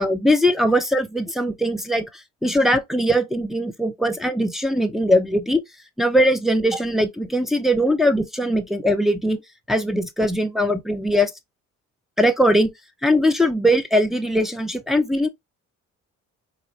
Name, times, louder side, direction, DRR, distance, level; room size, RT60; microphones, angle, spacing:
voice 1, 0.0-5.6 6.0-9.4 9.7-11.3 12.2-12.7 13.0-15.3, equal, ahead, 0.4 m, -20 dB
4.6 x 2.9 x 2.7 m
cardioid pair, 170°, 30 cm